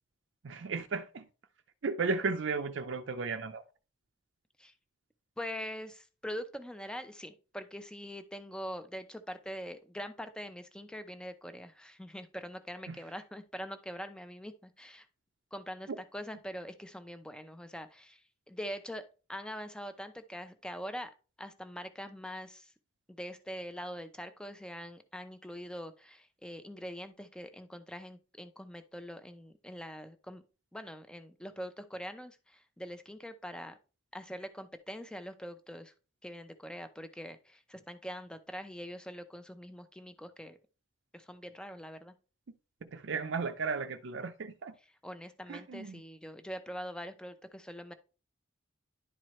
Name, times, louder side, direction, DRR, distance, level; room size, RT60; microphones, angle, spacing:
voice 1, 0.4-1.3 1.8-3.6 12.9-13.0 15.9-16.0 42.8-44.7 45.5-46.0, right 4 dB, 70° right, 0.5 m, -35 dB
voice 2, 5.4-15.1 15.5-21.1 21.4-22.7 23.1-30.4 30.7-33.8 34.1-35.9 36.2-40.6 41.1-42.1 45.0-47.9, equal, 5° left, 0.6 m, -43 dB
11.0 x 4.5 x 3.1 m
head